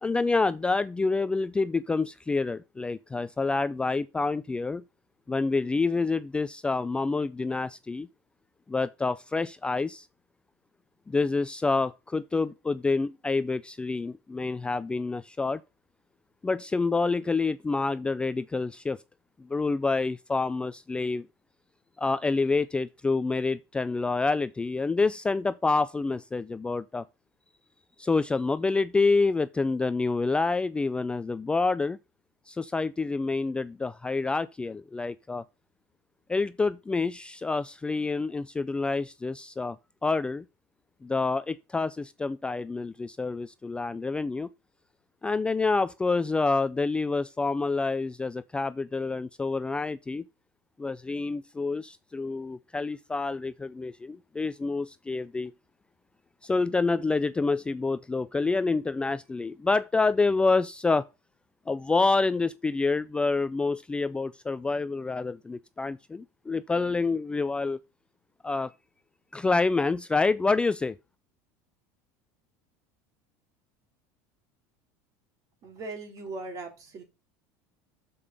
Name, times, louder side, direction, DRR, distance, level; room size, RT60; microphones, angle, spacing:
voice 1, 0.0-4.8 5.3-8.1 8.7-10.1 11.1-15.6 16.4-19.0 19.4-21.3 22.0-27.0 28.0-32.0 32.5-35.4 36.3-39.8 40.0-40.4 41.0-44.5 45.2-50.2 50.8-55.5 56.4-61.1 61.7-67.8 68.4-68.7 69.3-71.0, left 3 dB, 10° left, 0.3 m, -27 dB
voice 2, 75.6-77.0, right 3 dB, 45° right, 3.0 m, -39 dB
6.9 x 5.1 x 5.3 m
supercardioid pair, 105°, 8 cm